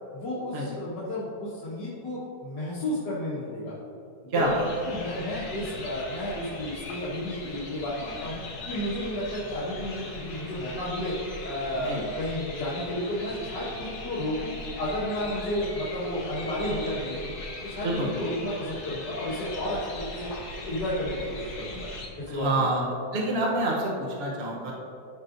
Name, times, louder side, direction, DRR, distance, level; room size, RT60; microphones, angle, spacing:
voice 1, 0.1-3.7 4.4-4.5 4.8-8.4 8.7-11.2 11.4-17.3 17.6-20.3 20.7-21.9 22.2-22.5, left 1 dB, 85° left, -10 dB, 2.2 m, -32 dB
voice 2, 4.3-4.7 11.8-12.0 17.8-18.1 22.3-22.9 23.1-24.7, right 1 dB, 40° right, -3 dB, 1.1 m, -27 dB
sound 1, 4.4-22.1, left 2 dB, 65° left, 1.7 m, -40 dB
13.0 x 6.0 x 2.6 m, 2.6 s
omnidirectional pair, 1.8 m